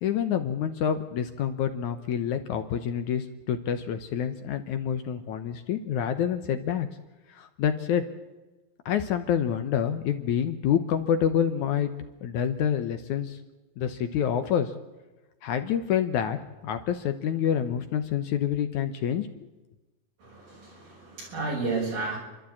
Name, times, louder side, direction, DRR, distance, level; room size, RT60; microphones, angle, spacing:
voice 1, 0.0-6.9 7.3-8.0 8.9-11.9 12.2-13.4 13.8-14.7 15.4-16.4 16.6-19.3, left 9 dB, 70° left, 9 dB, 2.1 m, -27 dB
voice 2, 20.2-22.2, right 3 dB, 75° right, -1 dB, 7.9 m, -32 dB
29.5 x 12.5 x 8.7 m, 1.1 s
omnidirectional pair, 4.1 m